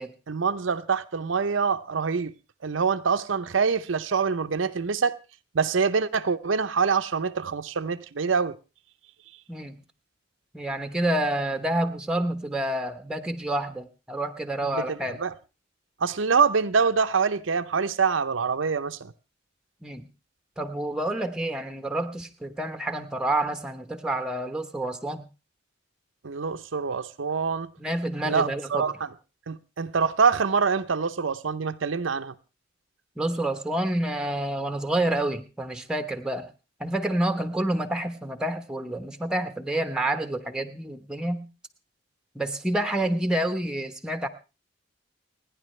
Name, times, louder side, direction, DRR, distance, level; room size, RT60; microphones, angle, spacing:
voice 1, 0.3-2.3 2.6-5.2 5.5-8.6 14.7-15.3 16.0-19.1 26.2-27.7 28.3-28.9 29.5-32.3, right 5 dB, 80° right, 0.7 m, -25 dB
voice 2, 9.5-9.8 10.5-15.2 19.8-20.1 20.6-25.3 27.8-28.8 33.2-36.5 36.8-41.5 42.3-44.3, right 1 dB, 5° right, 1.0 m, -28 dB
29.0 x 10.0 x 3.2 m
head